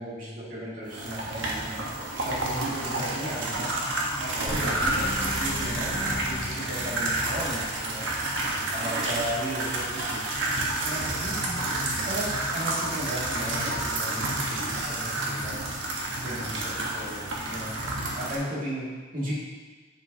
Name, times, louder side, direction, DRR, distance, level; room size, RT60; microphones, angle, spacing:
voice 1, 0.0-1.9 2.2-3.8 4.2-8.1 8.7-10.6 10.8-11.6 12.0-15.6 16.2-17.7 18.2-19.3, right 1 dB, 45° right, -8 dB, 2.3 m, -35 dB
sound 1, 0.9-18.4, right 2 dB, 75° right, 1.2 m, -30 dB
sound 2, 4.5-7.3, left 1 dB, 75° left, 0.8 m, -36 dB
10.5 x 5.0 x 2.8 m, 1.4 s
head